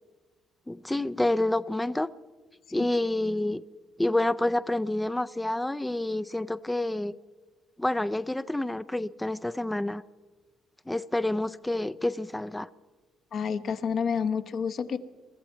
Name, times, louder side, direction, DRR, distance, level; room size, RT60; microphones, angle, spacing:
voice 1, 0.7-2.1 2.7-3.6 4.0-7.1 7.8-10.0 10.9-12.7, left 1 dB, 10° left, 0.4 m, -28 dB
voice 2, 13.3-15.0, left 6 dB, 60° left, 1.0 m, -29 dB
23.0 x 13.5 x 4.5 m
cardioid pair, 90°, 0 cm